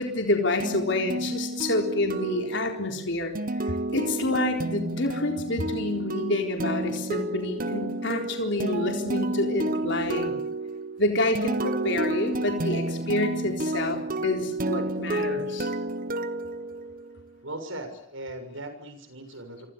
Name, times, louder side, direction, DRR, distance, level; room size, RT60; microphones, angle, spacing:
voice 1, 0.0-3.3 3.6-10.3 11.0-15.7, left 2 dB, 55° left, 3 dB, 4.1 m, -28 dB
sound 1, 0.6-17.3, right 2 dB, 40° right, 1.3 m, -31 dB
voice 2, 17.4-19.7, right 1 dB, 65° right, 8 dB, 6.9 m, -38 dB
28.5 x 25.5 x 7.0 m, 0.68 s
head